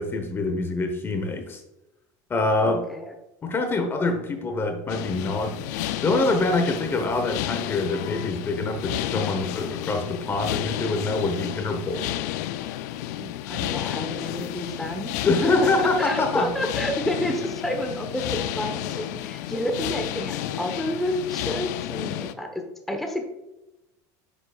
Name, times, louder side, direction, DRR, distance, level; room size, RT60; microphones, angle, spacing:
voice 1, 0.0-1.6 2.3-2.9 3.4-5.6 6.0-12.1 15.2-16.5, left 2 dB, 25° left, 6 dB, 1.0 m, -25 dB
voice 2, 2.5-3.1 13.1-23.2, equal, ahead, 3 dB, 1.0 m, -30 dB
sound 1, 4.9-22.3, left 13 dB, 85° left, 0.4 m, -31 dB
9.5 x 6.9 x 2.4 m, 0.95 s
supercardioid pair, 120°, 9 cm